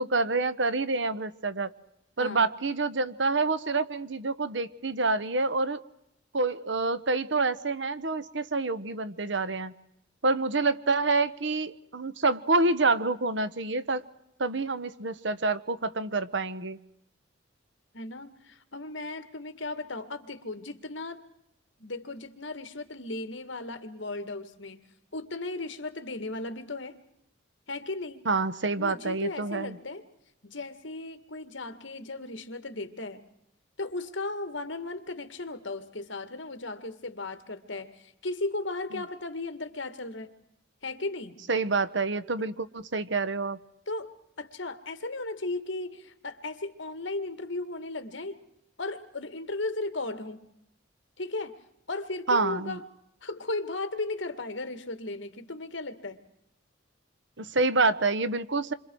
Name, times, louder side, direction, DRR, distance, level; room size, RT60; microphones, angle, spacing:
voice 1, 0.0-1.7 2.2-5.8 6.3-9.7 10.2-14.0 14.4-16.8 28.2-29.8 41.5-43.6 52.3-52.8 57.4-58.7, right 3 dB, 65° right, 13 dB, 1.2 m, -27 dB
voice 2, 2.2-2.5 17.9-21.2 21.8-24.9 25.1-27.0 27.7-28.3 28.8-30.0 30.4-33.2 33.8-40.3 40.8-41.4 43.9-48.4 48.8-50.5 51.2-51.6 51.9-52.9 53.2-56.2, left 2 dB, 70° left, 9 dB, 2.0 m, -36 dB
28.5 x 25.5 x 4.7 m, 0.78 s
head